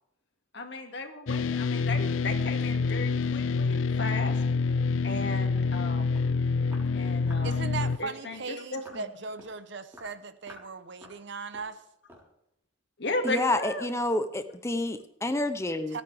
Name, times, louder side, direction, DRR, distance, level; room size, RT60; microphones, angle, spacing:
voice 1, 0.5-4.4 5.0-6.2 6.9-7.7 8.0-9.1 13.0-13.8, left 2 dB, 55° left, 4 dB, 2.3 m, -35 dB
sound 1, 1.3-8.0, left 4 dB, 75° left, 0.5 m, -27 dB
Walk footsteps, 6.2-6.3 6.7-6.9 7.3-7.5 7.8-8.0 8.3-8.5 8.9-9.1 9.4-9.6 9.9-10.2 10.5-10.7 11.0-11.2 11.5-11.8 12.1-12.3, equal, 10° right, 4.1 m, -50 dB
voice 2, 7.4-11.8 15.9-16.0, right 4 dB, 60° right, 12 dB, 0.8 m, -38 dB
voice 3, 13.2-16.0, left 2 dB, 15° left, 9 dB, 0.6 m, -29 dB
27.0 x 9.3 x 3.5 m, 0.80 s
head